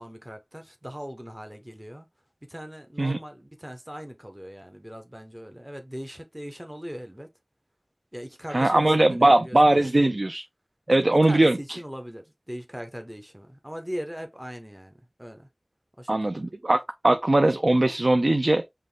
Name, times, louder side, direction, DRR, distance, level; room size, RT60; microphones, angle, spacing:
voice 1, 0.0-2.1 2.5-7.3 8.1-10.1 10.9-14.9 15.2-15.5 16.0-16.5, equal, 15° right, 0.9 m, -39 dB
voice 2, 8.5-10.4 10.9-11.6 16.1-16.8 17.0-18.6, right 1 dB, 75° right, 0.5 m, -20 dB
5.2 x 2.2 x 3.8 m
wide cardioid pair, 40°, 0 cm